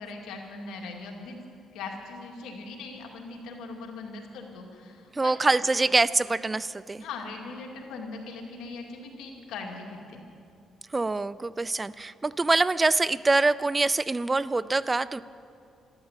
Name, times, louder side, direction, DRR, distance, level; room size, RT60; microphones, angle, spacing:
voice 1, 0.0-1.4 1.7-5.9 7.0-10.2, left 3 dB, 90° left, 1 dB, 2.3 m, -40 dB
voice 2, 5.1-7.0 10.9-15.2, right 3 dB, 20° right, 17 dB, 0.4 m, -25 dB
13.0 x 13.0 x 8.1 m, 2.5 s
cardioid pair, 90°, 0 cm